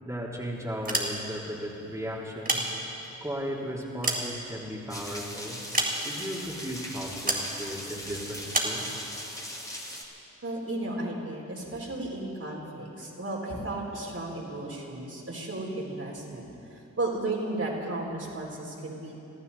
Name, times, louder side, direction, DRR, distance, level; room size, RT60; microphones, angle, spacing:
voice 1, 0.0-2.6 3.2-5.6 6.0-8.9, equal, 10° right, -6 dB, 3.6 m, -36 dB
sound 1, 0.7-1.5 2.2-3.2 3.7-5.0 5.7-6.4 7.3-7.5 8.5-8.8, right 2 dB, 25° right, 4.1 m, -29 dB
sound 2, 4.9-10.0, equal, 10° left, 3.1 m, -40 dB
voice 2, 10.4-19.1, right 2 dB, 45° right, -3 dB, 4.2 m, -34 dB
24.5 x 13.5 x 4.2 m, 2.9 s
supercardioid pair, 40°, 34 cm